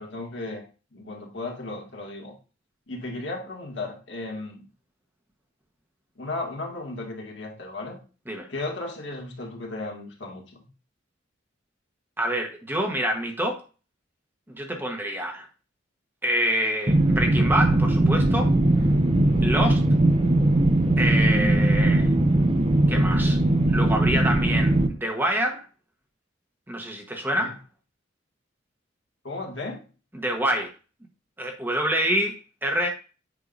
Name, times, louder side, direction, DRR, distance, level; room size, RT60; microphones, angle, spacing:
voice 1, 0.0-2.3 2.9-4.7 6.2-8.0 8.5-10.7 27.4-27.5 29.2-29.8, left 2 dB, 70° left, 2.0 m, -35 dB
voice 2, 12.2-13.6 14.5-15.4 16.2-18.6 19.4-19.8 21.0-22.1 22.9-23.4 23.7-25.6 26.7-27.6 30.1-30.7 31.4-32.9, right 1 dB, 10° right, 1.1 m, -26 dB
sound 1, 16.9-24.9, right 1 dB, 30° right, 0.7 m, -20 dB
8.0 x 5.5 x 2.5 m
head